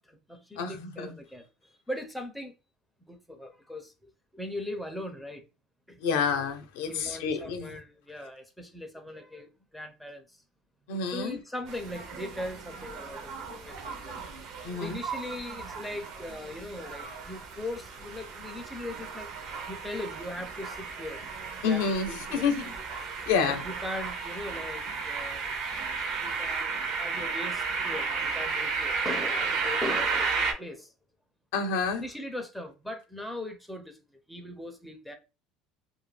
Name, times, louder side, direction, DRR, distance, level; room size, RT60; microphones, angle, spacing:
voice 1, 0.0-1.5 1.9-2.5 3.1-5.4 5.9-6.0 6.9-10.4 11.1-14.2 14.8-19.3 19.7-21.2 21.6-22.5 23.3-25.4 26.2-30.9 32.0-35.1, left 1 dB, ahead, 0.4 m, -39 dB
voice 2, 0.6-1.2 6.0-7.8 10.9-11.4 14.6-15.0 21.6-22.7 23.3-23.6 31.5-32.0, left 5 dB, 85° left, 0.6 m, -29 dB
sound 1, 11.7-30.5, right 5 dB, 50° right, 0.5 m, -34 dB
2.3 x 2.0 x 3.1 m
cardioid pair, 150°, 0 cm